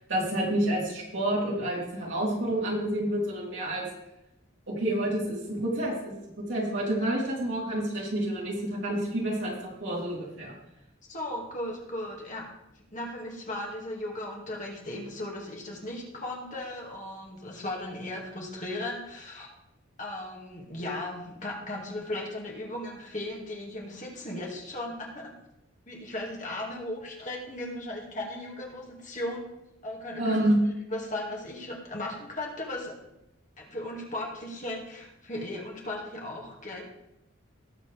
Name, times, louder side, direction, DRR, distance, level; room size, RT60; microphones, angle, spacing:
voice 1, 0.0-3.8 4.7-6.2 6.5-10.5 30.2-30.6, right 1 dB, 60° right, -5 dB, 4.0 m, -29 dB
voice 2, 11.1-12.4 12.9-19.5 20.0-25.3 25.9-29.5 29.8-30.4 30.9-32.9 33.6-36.8, left 1 dB, 35° left, -1 dB, 2.2 m, -36 dB
18.5 x 7.2 x 3.5 m, 0.85 s
head